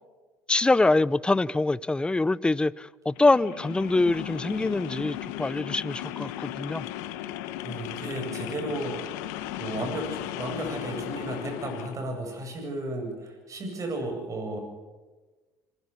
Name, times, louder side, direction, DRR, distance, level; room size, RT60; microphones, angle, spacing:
voice 1, 0.5-6.9, left 2 dB, 10° left, 0.6 m, -24 dB
sound 1, 3.1-12.0, left 13 dB, 80° left, 1.5 m, -36 dB
voice 2, 7.6-9.0 9.6-14.6, right 2 dB, 40° right, 7.9 m, -34 dB
26.5 x 16.0 x 7.1 m
supercardioid pair, 85°, 9 cm